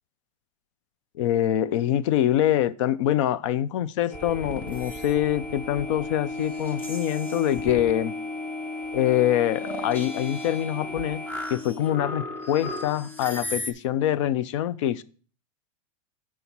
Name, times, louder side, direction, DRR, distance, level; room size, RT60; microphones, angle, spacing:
voice 1, 1.2-8.1 8.9-11.2 11.5-15.0, left 12 dB, 55° left, 0.5 m, -25 dB
sound 1, 4.1-13.7, left 2 dB, 10° left, 0.8 m, -34 dB
6.9 x 5.0 x 5.9 m
supercardioid pair, 165°, 18 cm